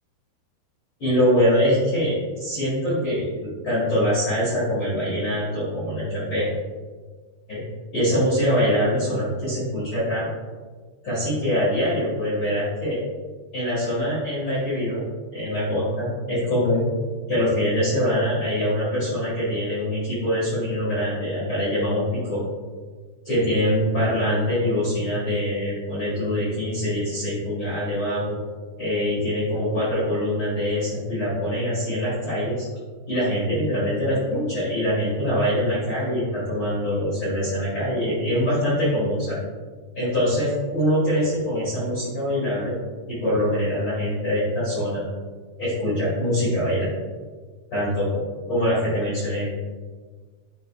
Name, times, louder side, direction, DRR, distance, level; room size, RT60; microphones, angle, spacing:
voice 1, 1.0-3.3 3.6-6.5 7.5-7.6 7.9-10.3 11.0-13.0 13.5-15.0 15.3-16.9 17.3-22.4 23.3-28.4 28.8-32.6 33.1-39.4 40.0-42.8 43.1-45.0 45.6-47.0 47.7-48.2 48.5-49.5, equal, 45° left, -10 dB, 1.8 m, -24 dB
10.5 x 4.0 x 2.4 m, 1.4 s
omnidirectional pair, 4.8 m